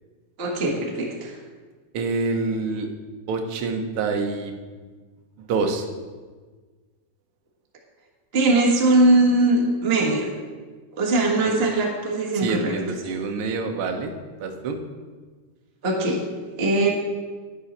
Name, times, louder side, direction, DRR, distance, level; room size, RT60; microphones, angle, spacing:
voice 1, 0.4-1.3 8.3-10.3 11.0-12.7 15.8-16.2 16.6-16.9, right 2 dB, 30° right, -1 dB, 1.1 m, -20 dB
voice 2, 1.9-2.9 3.3-4.5 5.4-5.9 12.3-14.1 14.4-14.8, right 4 dB, 60° right, 4 dB, 1.5 m, -26 dB
11.0 x 9.5 x 4.3 m, 1.4 s
omnidirectional pair, 3.4 m